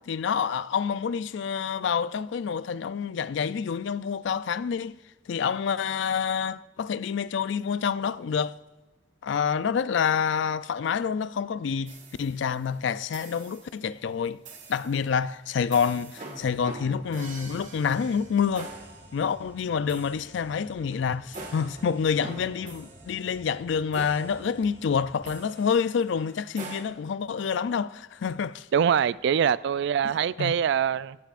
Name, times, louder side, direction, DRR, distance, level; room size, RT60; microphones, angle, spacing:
voice 1, 0.1-5.0 5.3-8.5 9.2-11.9 12.2-14.4 14.7-18.7 19.1-28.7 30.4-30.6, left 6 dB, 65° left, 0.4 m, -27 dB
sound 1, 11.9-12.6 13.1-13.8 14.4-15.0 15.7-26.8, right 2 dB, 40° right, 1.7 m, -45 dB
sound 2, 16.4-25.3, equal, 15° left, 2.9 m, -53 dB
voice 2, 28.7-31.2, right 8 dB, 60° right, 0.3 m, -24 dB
16.5 x 11.5 x 2.5 m
head